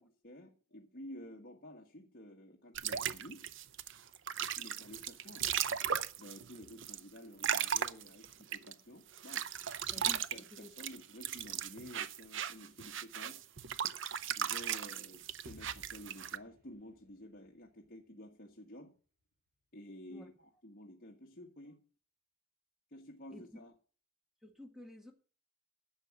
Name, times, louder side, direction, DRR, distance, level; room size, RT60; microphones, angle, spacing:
voice 1, 0.0-3.4 4.6-5.5 6.2-9.4 9.9-13.4 14.4-18.9 19.7-21.8 22.9-23.7, left 1 dB, 45° left, 0 dB, 1.6 m, -52 dB
sound 1, 2.8-8.7 9.2-16.4, right 9 dB, 60° right, 0.7 m, -37 dB
voice 2, 9.9-10.7 20.1-20.3 23.3-23.6 24.4-25.1, left 1 dB, ahead, 4 dB, 1.5 m, -51 dB
Explosion, 15.4-19.2, left 1 dB, 45° right, 3.8 m, -61 dB
11.5 x 7.1 x 7.6 m, 0.40 s
head